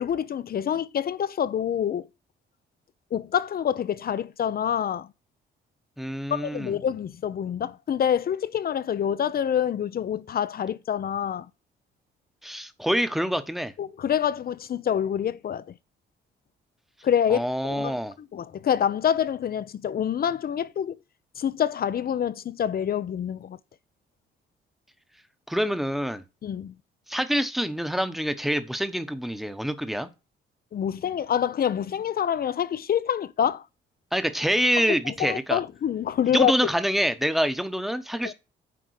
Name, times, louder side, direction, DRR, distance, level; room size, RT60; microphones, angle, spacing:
voice 1, 0.0-2.1 3.1-5.1 6.3-11.5 13.8-15.6 17.0-18.0 18.3-21.0 21.4-23.6 26.4-26.7 30.7-33.6 34.8-36.5 38.2-38.3, left 9 dB, 50° left, 0.7 m, -26 dB
voice 2, 6.0-6.8 12.4-13.7 17.3-18.1 25.5-26.2 27.1-30.1 34.1-35.6 36.3-38.3, equal, ahead, 1.1 m, -26 dB
9.5 x 3.7 x 6.5 m
cardioid pair, 90°, 20 cm